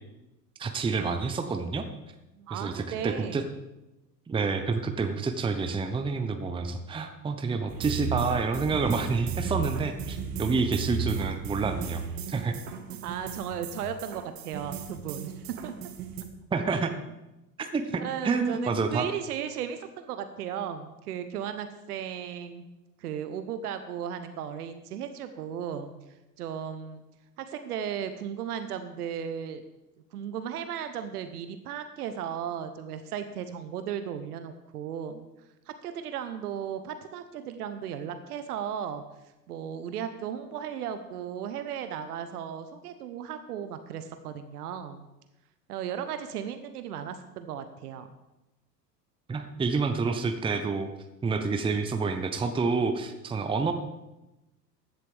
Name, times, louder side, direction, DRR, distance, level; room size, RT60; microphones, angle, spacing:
voice 1, 0.6-1.9 2.5-3.4 4.3-12.0 12.3-12.6 16.5-16.9 17.6-19.1 49.3-50.9 51.2-53.7, right 4 dB, 10° right, 7 dB, 0.8 m, -28 dB
voice 2, 2.3-3.5 12.9-15.7 16.7-16.8 18.0-22.6 23.0-25.9 26.4-27.0 27.4-29.6 30.1-35.3 35.7-39.0 39.5-45.1 45.7-48.1, right 8 dB, 65° right, 9 dB, 1.0 m, -35 dB
sound 1, 7.7-16.2, right 6 dB, 45° right, 1.8 m, -35 dB
15.5 x 11.0 x 3.5 m, 0.98 s
figure-of-eight pair, 85°, 49 cm